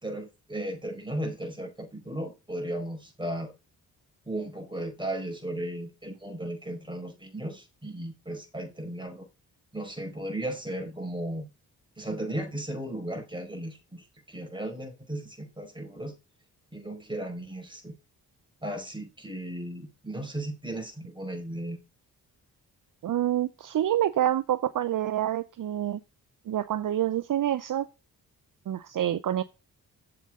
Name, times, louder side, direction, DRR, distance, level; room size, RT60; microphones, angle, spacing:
voice 1, 0.0-3.5 4.3-9.3 9.7-11.5 12.0-16.2 16.7-17.9 18.6-21.8, right 1 dB, 10° right, 4.8 m, -35 dB
voice 2, 23.0-26.0 26.5-27.9 28.7-29.4, right 11 dB, 55° right, 0.6 m, -27 dB
7.7 x 7.6 x 3.7 m
cardioid pair, 55°, 39 cm